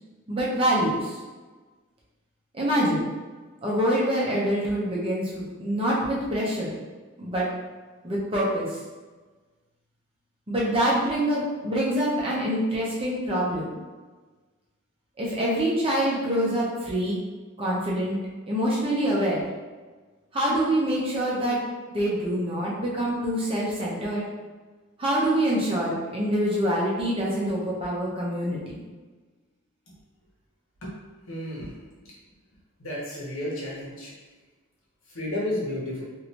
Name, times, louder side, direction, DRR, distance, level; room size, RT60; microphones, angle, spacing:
voice 1, 0.3-1.2 2.5-3.0 3.6-6.7 7.2-7.5 8.0-8.8 10.5-13.7 15.2-17.2 17.6-18.2 18.5-19.4 20.3-21.6 21.9-24.2 25.0-28.6, right 1 dB, 25° right, -6 dB, 0.7 m, -25 dB
voice 2, 31.3-31.7 32.8-34.1 35.1-36.0, left 1 dB, 75° left, -5 dB, 1.1 m, -31 dB
3.2 x 2.6 x 2.8 m, 1.3 s
head